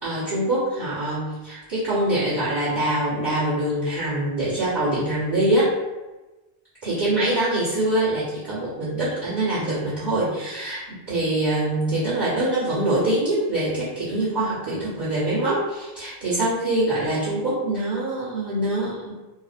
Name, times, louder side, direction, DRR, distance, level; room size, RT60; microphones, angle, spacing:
voice 1, 0.0-5.7 6.8-10.8 11.1-19.1, right 1 dB, 45° right, -12 dB, 1.3 m, -24 dB
3.8 x 2.0 x 2.5 m, 1.1 s
omnidirectional pair, 1.2 m